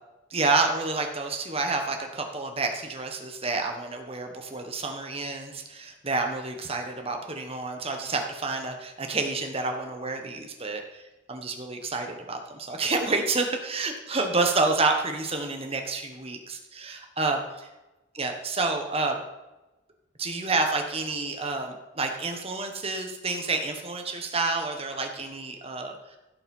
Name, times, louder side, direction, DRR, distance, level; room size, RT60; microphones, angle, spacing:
voice 1, 0.3-11.0 11.3-17.4 18.1-19.2 20.2-26.2, right 3 dB, 30° right, 4 dB, 1.2 m, -29 dB
16.0 x 5.5 x 5.4 m, 1.0 s
head